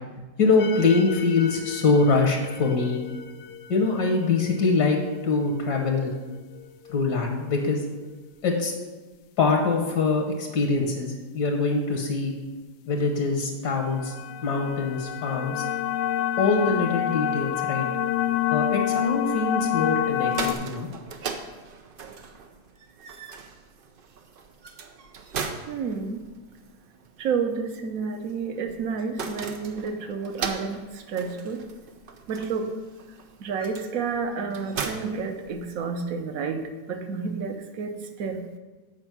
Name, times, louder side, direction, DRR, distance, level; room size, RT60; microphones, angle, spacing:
voice 1, 0.4-3.0 3.7-6.1 6.9-7.8 8.4-8.7 9.4-12.3 12.9-14.1 14.4-15.7 16.4-17.9 18.5-20.9, left 4 dB, 75° left, 2 dB, 1.5 m, -23 dB
sound 1, 0.6-7.0 13.8-20.5, left 11 dB, 90° left, 1.2 m, -29 dB
sound 2, 20.1-36.0, right 5 dB, 85° right, 0.4 m, -39 dB
voice 2, 25.7-26.2 27.2-31.6 32.3-32.7 33.4-38.4, right 5 dB, 60° right, 6 dB, 1.1 m, -30 dB
7.9 x 4.9 x 6.0 m, 1.3 s
omnidirectional pair, 1.8 m